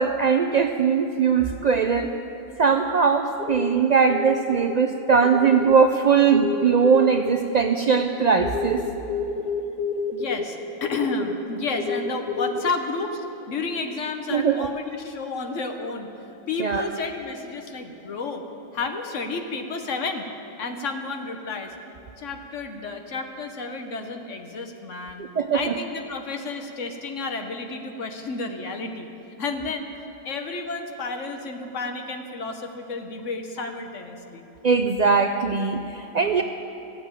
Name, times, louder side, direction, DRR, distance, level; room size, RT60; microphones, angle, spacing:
voice 1, 0.0-2.1 2.6-8.8 14.3-14.7 16.6-16.8 25.2-25.7 34.6-36.4, right 6 dB, 75° right, 6 dB, 0.3 m, -20 dB
sound 1, 3.4-4.9 5.2-5.8 6.3-12.7 13.4-13.7, left 5 dB, 40° left, 0.6 m, -30 dB
voice 2, 10.1-16.1 16.5-18.4 18.7-20.3 20.6-21.7 22.2-25.3 25.5-29.1 29.4-29.9 30.2-34.5, left 3 dB, 65° left, 5 dB, 1.3 m, -31 dB
14.5 x 7.7 x 8.9 m, 2.9 s
omnidirectional pair, 1.4 m